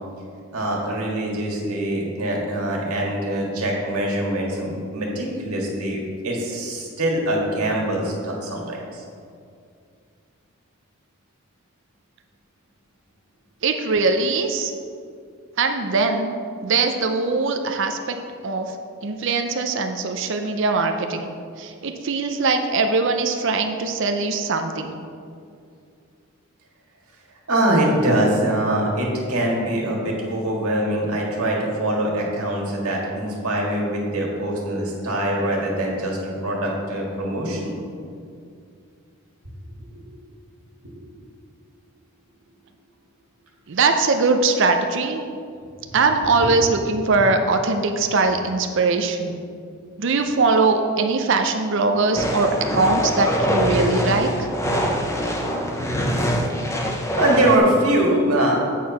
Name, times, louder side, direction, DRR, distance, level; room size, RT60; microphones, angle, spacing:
voice 1, 0.5-9.0 27.5-36.2 36.4-37.8 39.8-40.0 57.2-58.6, right 1 dB, 90° right, -2 dB, 1.8 m, -23 dB
voice 2, 13.6-14.7 15.6-16.3 16.6-18.2 18.4-18.8 19.0-21.3 21.6-25.0 43.7-45.2 45.9-49.4 50.0-54.5, right 3 dB, 55° right, 5 dB, 0.5 m, -21 dB
sound 1, 52.1-57.6, equal, 15° left, 0.6 m, -23 dB
8.4 x 4.6 x 5.7 m, 2.3 s
head